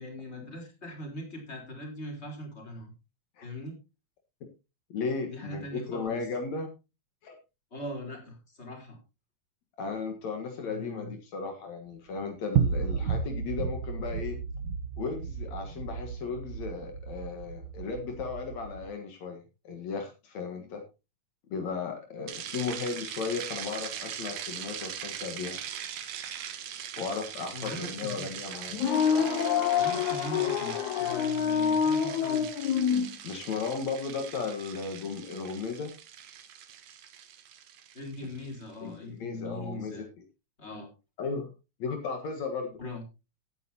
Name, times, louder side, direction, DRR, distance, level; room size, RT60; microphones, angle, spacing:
voice 1, 0.0-2.9 3.4-3.7 5.3-6.3 7.7-9.0 10.6-11.1 27.5-28.3 29.8-32.5 37.9-40.0 40.6-40.9 42.8-43.0, left 1 dB, 20° left, 1 dB, 4.4 m, -40 dB
voice 2, 4.9-6.7 7.2-7.4 9.8-14.4 15.0-20.8 21.5-25.6 27.0-28.8 33.2-35.9 38.8-40.1 41.2-41.5 41.8-42.8, left 5 dB, 70° left, 4 dB, 2.8 m, -35 dB
sound 1, 12.5-18.9, right 7 dB, 85° right, 0.9 m, -33 dB
sound 2, 22.3-38.6, right 9 dB, 70° right, 2.5 m, -41 dB
sound 3, 28.7-33.1, left 7 dB, 90° left, 2.6 m, -26 dB
16.5 x 9.2 x 2.9 m, 0.29 s
omnidirectional pair, 3.3 m